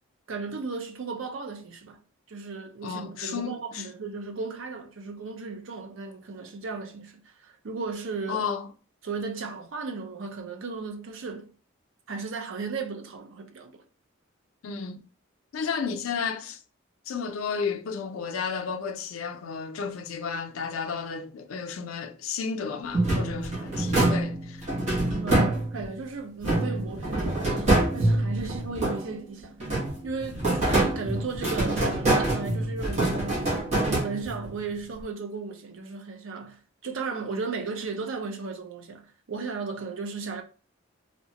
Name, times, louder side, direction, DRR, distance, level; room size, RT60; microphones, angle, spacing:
voice 1, 0.3-2.0 2.3-8.4 9.0-11.5 12.1-13.8 25.2-29.8 30.0-33.5 33.9-40.4, right 4 dB, 70° right, 0.5 m, -35 dB
voice 2, 2.8-3.9 8.3-8.7 14.6-15.1 15.5-16.6 17.1-24.7, left 6 dB, 80° left, 0.4 m, -32 dB
sound 1, 22.9-26.0 26.4-29.2 29.6-34.5, right 1 dB, 35° right, 1.0 m, -25 dB
2.8 x 2.1 x 2.8 m
head